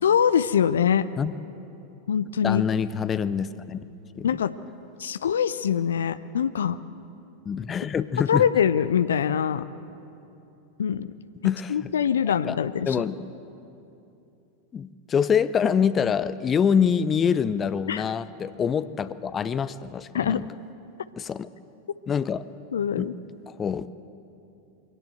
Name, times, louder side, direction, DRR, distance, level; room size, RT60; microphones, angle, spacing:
voice 1, 0.0-1.1 2.1-2.6 4.2-4.5 5.0-6.8 8.3-9.6 10.8-11.1 11.7-13.0 17.9-18.0 20.1-20.5 22.7-23.1, left 8 dB, 65° left, 14 dB, 0.6 m, -23 dB
voice 2, 2.4-3.8 4.2-4.3 7.5-8.4 11.4-11.9 12.5-12.6 12.9-13.3 14.7-20.4 21.2-21.5 22.1-22.4 23.0-23.1 23.5-23.9, left 7 dB, 20° left, 15 dB, 0.6 m, -25 dB
24.0 x 17.5 x 7.8 m, 2.8 s
figure-of-eight pair, 90°, 0 cm